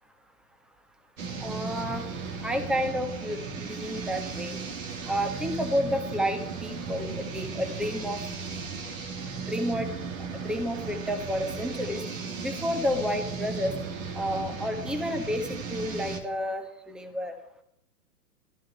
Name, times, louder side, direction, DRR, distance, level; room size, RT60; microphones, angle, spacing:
sound 1, 1.2-16.2, right 5 dB, 55° right, 3.1 m, -36 dB
voice 1, 1.4-2.1 2.4-4.6 5.1-8.2 9.5-9.9 10.4-12.0 12.4-13.7 14.1-17.3, equal, ahead, 7 dB, 1.4 m, -30 dB
16.5 x 13.5 x 4.3 m, 0.73 s
figure-of-eight pair, 115°, 47 cm